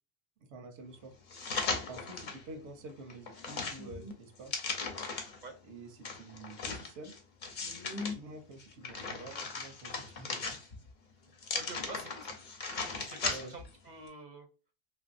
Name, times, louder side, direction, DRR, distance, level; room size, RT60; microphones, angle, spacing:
voice 1, 0.5-1.1 1.9-4.5 5.6-7.1 8.1-10.5 13.2-13.6, right 3 dB, 90° right, 6 dB, 1.0 m, -48 dB
sound 1, 1.3-2.4 2.9-5.4 6.0-8.1 8.6-10.9 11.4-13.7 14.1-14.2, left 4 dB, 50° left, 0.7 m, -37 dB
voice 2, 11.5-12.3 12.9-14.5, right 3 dB, 50° right, 5 dB, 0.6 m, -46 dB
3.2 x 2.6 x 2.4 m, 0.35 s
omnidirectional pair, 1.1 m